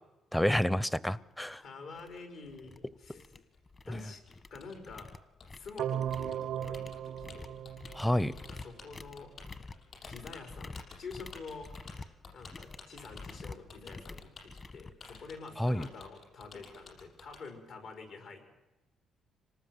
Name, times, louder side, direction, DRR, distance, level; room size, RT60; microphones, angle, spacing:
voice 1, 0.3-1.6 3.9-4.0 7.9-8.3 15.6-15.9, equal, 5° left, 20 dB, 0.7 m, -29 dB
sound 1, 1.4-1.5 2.0-2.2 2.5-2.8 3.1-4.0 4.3-15.5, left 3 dB, 35° left, 1.4 m, -48 dB
voice 2, 1.6-3.3 3.8-4.2 4.5-5.1 5.5-7.6 8.5-9.3 10.1-11.7 12.3-18.5, left 4 dB, 75° left, 5 dB, 5.0 m, -47 dB
Typing, 2.6-17.4, left 5 dB, 50° left, 6.3 m, -53 dB
sound 2, 5.8-8.8, right 10 dB, 80° right, 0.7 m, -37 dB
26.5 x 19.0 x 7.9 m, 1.0 s
cardioid pair, 90°, 0 cm